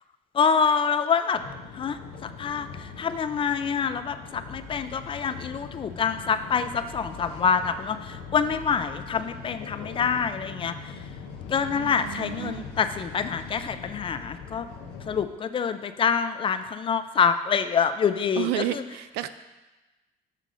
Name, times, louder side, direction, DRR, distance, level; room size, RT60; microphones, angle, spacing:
voice 1, 0.3-1.4 1.7-10.7 11.5-14.7 15.1-18.6, left 6 dB, 30° left, 11 dB, 0.4 m, -26 dB
sound 1, 1.3-15.2, left 5 dB, 85° left, 0.7 m, -41 dB
voice 2, 11.7-12.7 18.4-19.3, right 13 dB, 85° right, 12 dB, 0.4 m, -31 dB
6.5 x 5.2 x 3.8 m, 1.1 s
cardioid pair, 110°, 17 cm